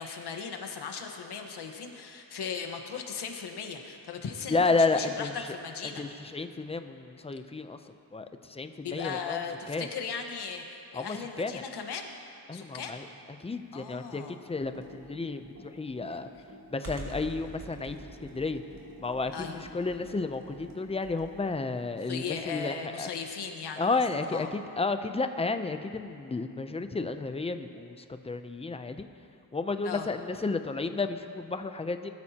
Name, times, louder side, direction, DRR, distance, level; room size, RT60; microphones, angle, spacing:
voice 1, 0.0-6.0 8.8-12.1 12.5-13.0 13.7-14.4 16.1-16.2 19.3-19.6 22.0-24.5 29.8-30.1, left 6 dB, 85° left, 3 dB, 1.4 m, -38 dB
voice 2, 4.5-5.3 6.0-7.8 8.1-9.4 9.7-9.9 10.9-11.6 12.5-13.1 13.4-16.3 16.7-18.6 19.0-23.1 23.8-29.1 29.5-32.1, left 3 dB, 15° left, 8 dB, 0.5 m, -32 dB
Computer keyboard, 14.6-21.5, right 1 dB, 60° right, 2.9 m, -46 dB
21.0 x 13.0 x 2.9 m, 2.5 s
wide cardioid pair, 135°, 39 cm